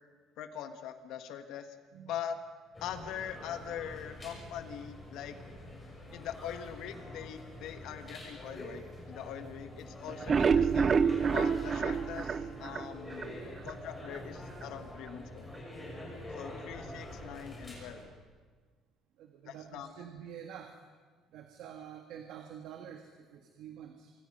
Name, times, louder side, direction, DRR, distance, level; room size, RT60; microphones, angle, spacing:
voice 1, 0.4-1.7 2.1-2.4 2.8-5.4 6.1-11.0 11.3-13.3 13.6-15.6 16.3-18.1 19.5-20.0, left 9 dB, 65° left, 8 dB, 1.6 m, -42 dB
sound 1, 2.7-18.0, left 1 dB, 15° left, 6.4 m, -46 dB
sound 2, 10.1-13.3 13.7-13.8 14.1-14.2 14.6-14.7, right 6 dB, 30° right, 0.5 m, -28 dB
voice 2, 19.2-20.7 21.3-24.1, right 9 dB, 65° right, 4 dB, 1.8 m, -47 dB
25.5 x 23.5 x 5.6 m, 1.5 s
cardioid pair, 155°, 0 cm